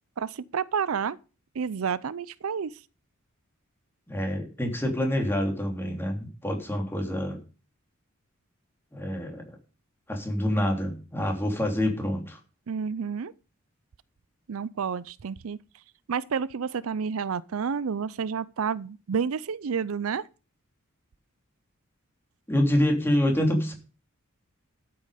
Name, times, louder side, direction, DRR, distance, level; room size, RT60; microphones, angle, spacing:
voice 1, 0.2-1.2 1.5-2.7 12.7-13.3 14.5-15.6 16.1-20.3, right 6 dB, 75° right, 0.5 m, -30 dB
voice 2, 4.1-7.4 8.9-9.6 10.1-12.4 22.5-23.7, left 1 dB, 10° left, 3.1 m, -26 dB
12.5 x 8.7 x 5.0 m
head